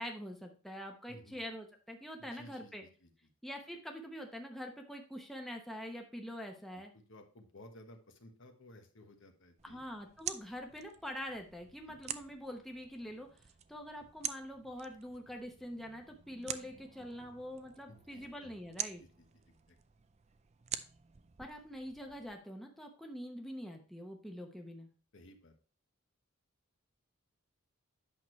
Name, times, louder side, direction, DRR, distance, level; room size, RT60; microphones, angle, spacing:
voice 1, 0.0-2.8 3.4-6.9 9.6-19.0 21.4-24.9, equal, ahead, 2 dB, 0.9 m, -45 dB
voice 2, 1.1-1.4 2.2-3.1 6.7-9.8 11.9-12.0 17.9-18.6 19.0-19.8 25.1-25.5, left 1 dB, 60° left, 5 dB, 1.2 m, -57 dB
sound 1, 9.6-22.4, right 9 dB, 30° right, 0.4 m, -47 dB
8.6 x 6.1 x 3.1 m, 0.38 s
head